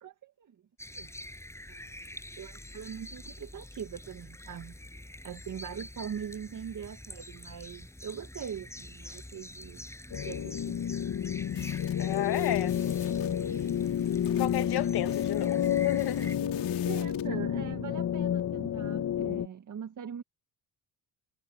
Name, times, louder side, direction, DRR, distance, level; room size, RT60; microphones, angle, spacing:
voice 1, 0.0-0.6 1.0-1.1 1.7-1.9 2.4-4.7 5.2-9.9 10.2-10.8 16.9-20.2, right 8 dB, 45° right, 1.9 m, -42 dB
sound 1, 0.8-16.4, left 1 dB, 5° left, 7.8 m, -46 dB
sound 2, 10.1-19.5, left 9 dB, 45° left, 1.7 m, -30 dB
sound 3, 11.5-17.3, left 17 dB, 85° left, 4.1 m, -50 dB
voice 2, 12.0-12.7 14.4-16.3, left 13 dB, 65° left, 1.6 m, -32 dB
cardioid pair, 95°, 42 cm